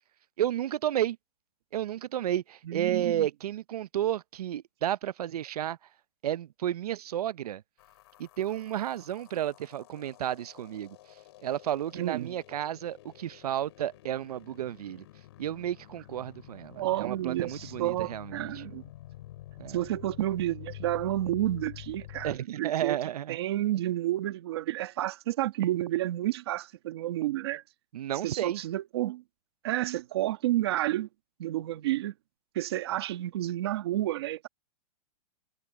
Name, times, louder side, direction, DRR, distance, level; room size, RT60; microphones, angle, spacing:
voice 1, 0.4-1.2 1.7-5.8 6.2-7.6 8.2-11.0 11.4-15.1 15.4-18.5 19.6-19.8 22.2-23.4 27.9-28.6, right 11 dB, 70° right, 0.6 m, -32 dB
voice 2, 2.6-3.3 11.9-12.3 16.7-18.8 19.7-23.0 23.3-27.6 28.2-29.2 29.6-31.1 31.4-32.1 32.5-34.5, right 14 dB, 40° right, 1.6 m, -30 dB
sound 1, 7.8-22.4, left 15 dB, 40° left, 5.2 m, -48 dB
hypercardioid pair, 175°, 20 cm